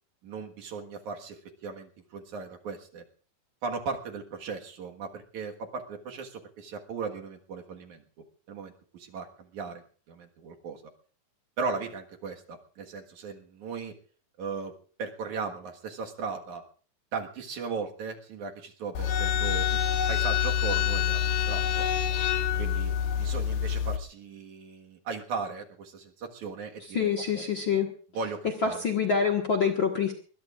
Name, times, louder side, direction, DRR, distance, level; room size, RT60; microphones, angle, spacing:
voice 1, 0.2-3.0 3.6-8.0 8.5-10.8 11.6-13.9 14.4-14.7 15.0-16.6 17.1-19.8 20.1-21.2 21.5-21.8 22.6-27.5 28.1-28.8, right 5 dB, 60° right, 2 dB, 2.8 m, -37 dB
sound 1, 19.0-24.0, left 9 dB, 90° left, 3.1 m, -26 dB
voice 2, 26.9-27.9 28.6-30.1, left 6 dB, 45° left, 4 dB, 1.7 m, -26 dB
23.5 x 21.0 x 2.5 m, 0.42 s
omnidirectional pair, 4.1 m